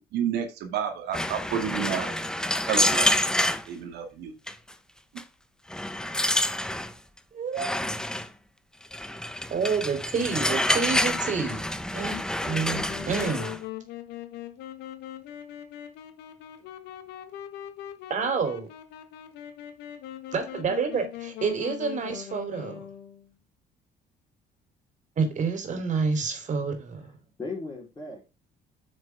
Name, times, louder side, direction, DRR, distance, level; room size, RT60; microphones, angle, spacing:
voice 1, 0.0-2.1 2.7-3.2 3.7-4.3, right 8 dB, 80° right, 4 dB, 2.2 m, -30 dB
sound 1, 1.1-3.7 4.5-4.7 5.2-5.3 5.7-6.9 7.6-8.3 8.9-13.6, left 1 dB, 5° left, 0.9 m, -27 dB
voice 2, 7.3-7.7 9.5-11.6 11.9-13.5 18.1-18.7 20.3-22.9 25.2-27.1, right 5 dB, 45° right, 7 dB, 3.3 m, -28 dB
Wind instrument woodwind instrument, 12.4-23.3, left 11 dB, 85° left, 1.5 m, -41 dB
voice 3, 27.0-28.3, left 3 dB, 20° left, -5 dB, 4.0 m, -38 dB
9.3 x 6.4 x 3.5 m, 0.28 s
cardioid pair, 110°, 17 cm